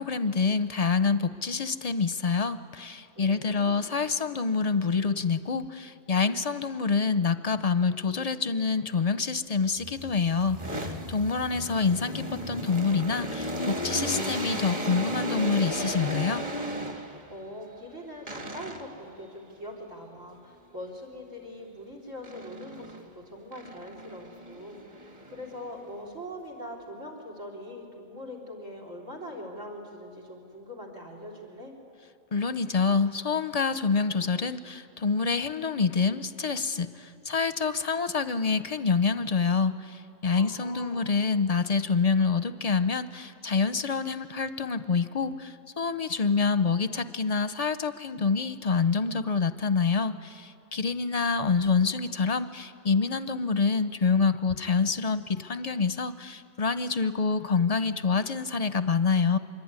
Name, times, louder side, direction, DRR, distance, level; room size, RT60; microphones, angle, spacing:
voice 1, 0.0-16.4 32.3-59.4, left 5 dB, 35° left, 12 dB, 0.7 m, -27 dB
voice 2, 3.2-3.8 17.3-31.7 40.3-41.1, left 1 dB, 85° right, 2 dB, 4.2 m, -42 dB
sound 1, 9.7-17.4 18.3-19.1 22.2-23.1 23.5-25.9, equal, 30° right, 1.8 m, -35 dB
25.5 x 23.0 x 9.7 m, 2.7 s
omnidirectional pair, 1.3 m